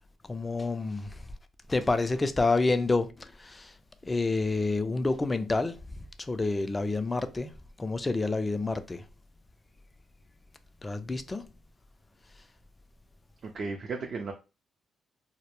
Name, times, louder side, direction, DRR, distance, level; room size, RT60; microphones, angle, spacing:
voice 1, 0.3-1.2 1.7-3.7 4.0-9.0 10.8-11.5, left 3 dB, 20° left, 0.3 m, -29 dB
voice 2, 13.4-14.3, right 4 dB, 50° right, 0.4 m, -35 dB
2.1 x 2.0 x 2.9 m
cardioid pair, 90°, 0 cm